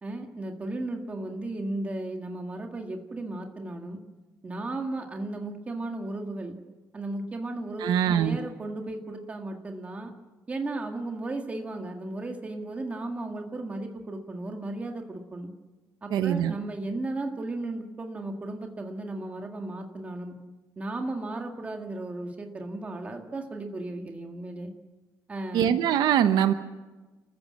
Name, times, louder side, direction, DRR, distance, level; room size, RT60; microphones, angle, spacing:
voice 1, 0.0-4.0 4.4-6.6 6.9-10.1 10.5-15.5 16.0-20.4 20.8-24.7 25.3-25.8, right 2 dB, 20° right, 3 dB, 1.9 m, -35 dB
voice 2, 7.8-8.4 16.1-16.5 25.5-26.5, right 9 dB, 80° right, 9 dB, 1.1 m, -23 dB
29.5 x 14.5 x 7.6 m, 1.2 s
cardioid pair, 175°, 7 cm